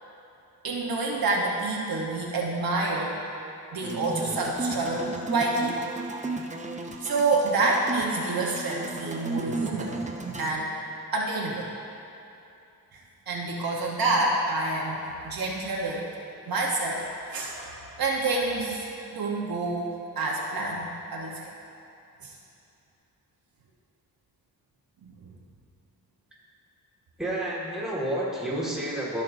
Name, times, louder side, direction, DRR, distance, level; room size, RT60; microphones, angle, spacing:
voice 1, 0.6-3.2 3.7-5.7 6.4-6.5 7.0-10.0 10.4-10.7 11.1-11.7 12.9-13.0 13.3-16.0 16.5-19.9 20.1-21.3 22.2-22.3 25.0-25.3, right 2 dB, 60° right, -3 dB, 1.2 m, -28 dB
sound 1, 3.8-10.5, right 3 dB, 20° right, 0.6 m, -34 dB
voice 2, 27.2-29.2, right 1 dB, ahead, -7 dB, 1.9 m, -30 dB
16.0 x 5.8 x 2.7 m, 2.8 s
wide cardioid pair, 115°, 39 cm